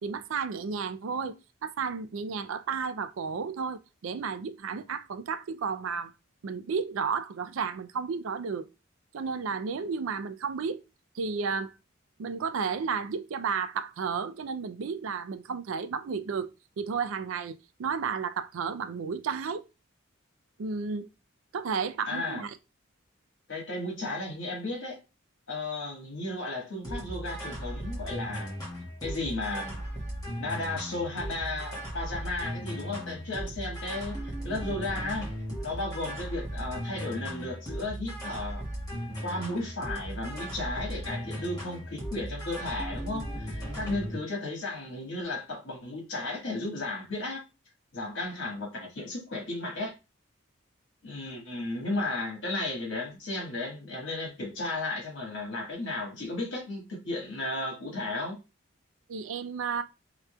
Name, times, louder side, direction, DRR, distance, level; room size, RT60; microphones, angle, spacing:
voice 1, 0.0-6.1 6.4-8.7 9.1-10.8 11.2-11.7 12.2-16.5 16.8-19.6 20.6-21.1 21.5-22.5 59.1-59.8, right 5 dB, 80° right, 0.4 m, -32 dB
voice 2, 22.1-22.4 23.5-25.0 25.5-28.6 29.0-29.8 30.4-35.3 35.6-38.6 39.2-47.4 47.9-49.9 51.0-58.4, left 2 dB, 65° left, 1.7 m, -34 dB
sound 1, 26.8-44.2, equal, 15° left, 1.2 m, -37 dB
4.9 x 2.9 x 2.3 m
head